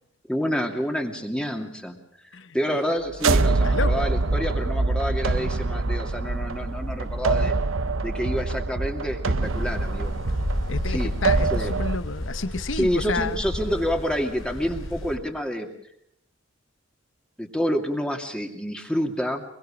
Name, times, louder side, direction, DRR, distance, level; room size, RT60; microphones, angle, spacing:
voice 1, 0.3-2.0 2.2-7.5 8.0-10.2 10.9-11.1 11.5-11.7 12.7-15.7 17.4-19.4, equal, 5° left, 3 dB, 2.6 m, -28 dB
voice 2, 2.3-2.8 3.6-4.0 10.7-13.4, left 4 dB, 65° left, 12 dB, 0.9 m, -30 dB
sound 1, 3.1-12.0, right 3 dB, 80° right, 1.0 m, -25 dB
sound 2, 9.4-15.2, equal, 90° left, 4.5 m, -32 dB
23.5 x 23.0 x 5.0 m, 0.72 s
head